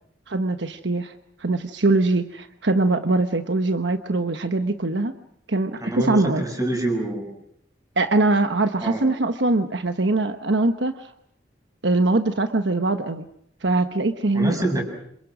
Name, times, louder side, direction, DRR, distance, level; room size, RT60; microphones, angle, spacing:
voice 1, 0.3-1.1 1.4-5.1 5.5-6.4 8.0-11.1 11.8-13.2 13.6-14.6, right 2 dB, 70° right, 8 dB, 1.2 m, -22 dB
voice 2, 5.8-7.3 8.8-9.0 14.3-14.8, right 1 dB, 20° right, 3 dB, 6.7 m, -25 dB
27.5 x 27.5 x 6.2 m, 0.70 s
head